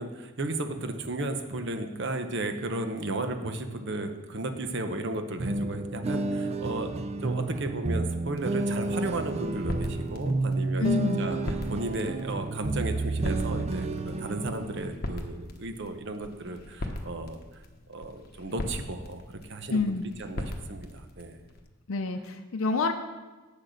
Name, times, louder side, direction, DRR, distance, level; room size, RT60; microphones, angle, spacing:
voice 1, 0.0-17.4 17.9-19.9 20.2-21.4, right 2 dB, 55° right, 7 dB, 0.9 m, -34 dB
sound 1, 5.4-14.9, right 2 dB, 30° right, 0.4 m, -31 dB
sound 2, 8.1-21.6, left 1 dB, 45° left, 1.0 m, -40 dB
voice 2, 10.8-11.3 19.7-20.1 21.9-22.9, left 3 dB, 70° left, 5 dB, 0.6 m, -27 dB
8.4 x 6.3 x 6.5 m, 1.2 s
head